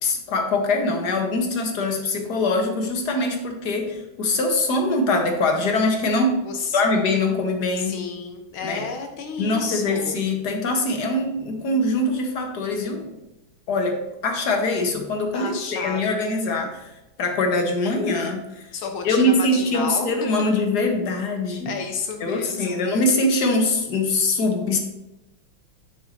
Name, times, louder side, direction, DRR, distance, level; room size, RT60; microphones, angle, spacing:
voice 1, 0.0-6.4 6.7-8.0 8.6-8.8 9.4-13.2 13.7-16.9 17.2-18.7 19.0-21.7 22.2-24.8, left 2 dB, 55° left, 3 dB, 1.7 m, -23 dB
voice 2, 6.4-6.8 7.8-10.2 15.3-16.2 18.7-20.1 21.7-22.8, left 5 dB, 80° left, 4 dB, 1.8 m, -31 dB
9.2 x 8.4 x 2.8 m, 0.95 s
omnidirectional pair, 2.3 m